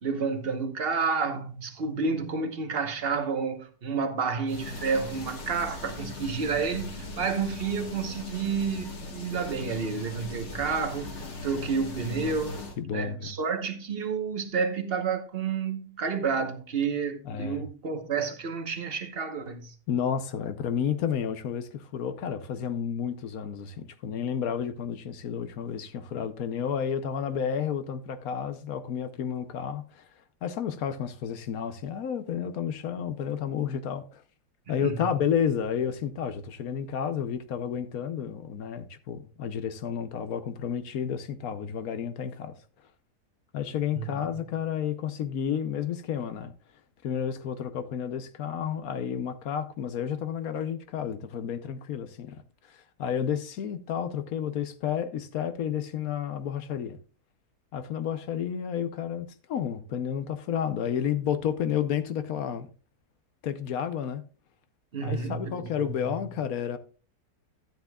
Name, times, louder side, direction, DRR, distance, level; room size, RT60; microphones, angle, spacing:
voice 1, 0.0-11.2 11.4-12.6 12.9-19.7 34.8-35.1 43.9-44.1 64.9-66.3, right 5 dB, 40° right, 1.2 m, -30 dB
sound 1, 4.5-12.8, left 2 dB, 45° left, 1.9 m, -39 dB
voice 2, 12.8-13.3 17.2-17.7 19.9-30.1 30.4-34.2 34.7-42.6 43.5-46.5 47.0-57.0 57.7-62.7 63.4-64.2 65.0-66.8, left 8 dB, 65° left, 1.2 m, -31 dB
13.0 x 9.8 x 2.3 m
omnidirectional pair, 1.8 m